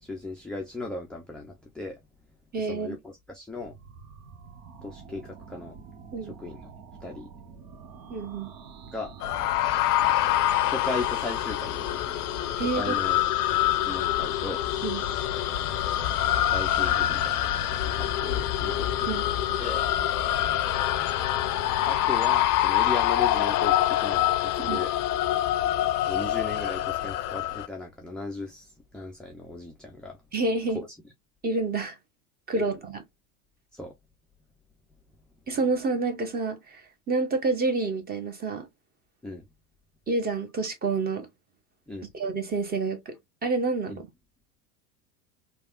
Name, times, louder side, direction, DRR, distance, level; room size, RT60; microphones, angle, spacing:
voice 1, 0.0-2.0 2.7-3.7 4.8-5.8 6.4-6.7 7.0-7.3 8.9-9.1 10.0-10.3 10.6-12.1 12.7-13.3 13.7-14.6 16.5-17.3 17.8-19.1 19.6-19.8 21.8-24.9 26.1-28.7 28.9-30.2 30.7-30.9 32.5-32.6 33.7-33.9 39.2-39.4 41.9-42.1 43.9-44.0, left 2 dB, ahead, 0.4 m, -37 dB
voice 2, 2.5-3.0 6.1-6.3 8.1-8.5 12.6-12.9 14.8-15.0 19.1-19.3 24.6-24.8 30.3-30.8 31.4-32.0 32.5-33.0 35.5-38.7 40.1-41.3 42.1-43.2 43.4-44.1, right 3 dB, 20° right, 0.9 m, -28 dB
sound 1, 3.6-22.5, right 5 dB, 60° right, 1.0 m, -46 dB
sound 2, 9.2-27.7, left 13 dB, 75° left, 0.5 m, -25 dB
3.3 x 2.4 x 2.3 m
hypercardioid pair, 90°, 46 cm